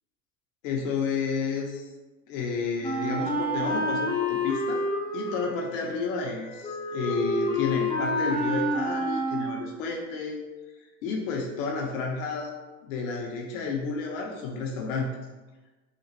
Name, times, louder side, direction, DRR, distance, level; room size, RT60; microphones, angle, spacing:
voice 1, 0.6-1.9 2.3-4.8 5.1-10.4 11.0-12.5 12.8-15.2, left 4 dB, 75° left, 0 dB, 0.6 m, -31 dB
Wind instrument woodwind instrument, 2.8-9.8, left 1 dB, 15° left, 0.5 m, -29 dB
2.9 x 2.1 x 2.9 m, 1.2 s
hypercardioid pair, 85°, 40 cm